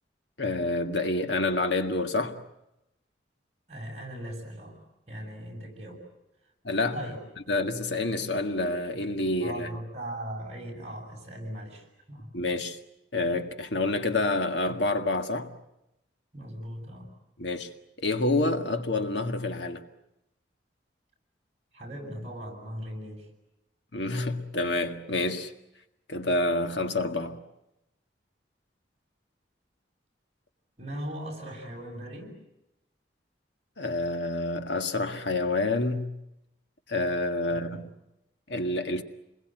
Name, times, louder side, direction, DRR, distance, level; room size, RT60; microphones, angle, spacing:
voice 1, 0.4-2.4 6.6-7.0 7.5-9.7 12.3-12.8 13.1-15.5 17.4-17.7 18.0-19.8 23.9-25.5 26.1-27.4 33.8-36.1 36.9-37.9 38.5-39.0, left 2 dB, 70° left, 1.9 m, -28 dB
voice 2, 3.7-6.0 6.9-7.2 9.4-12.3 16.3-17.1 21.7-23.3 30.8-32.3 37.5-37.8, equal, 35° right, 7.5 m, -39 dB
29.0 x 21.5 x 9.1 m
head